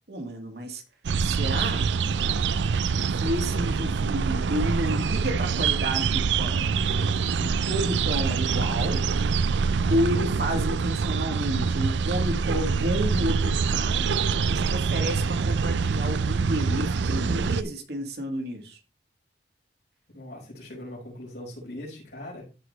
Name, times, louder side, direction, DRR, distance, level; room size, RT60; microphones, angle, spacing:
voice 1, 0.1-0.8 1.2-1.9 3.1-6.7 7.4-9.0 9.9-14.1 14.5-18.8, equal, 65° right, 3 dB, 2.0 m, -30 dB
sound 1, 1.0-17.6, right 5 dB, 90° right, 0.4 m, -25 dB
voice 2, 20.1-22.5, left 1 dB, 65° left, -2 dB, 5.1 m, -40 dB
14.0 x 5.1 x 3.2 m, 0.33 s
head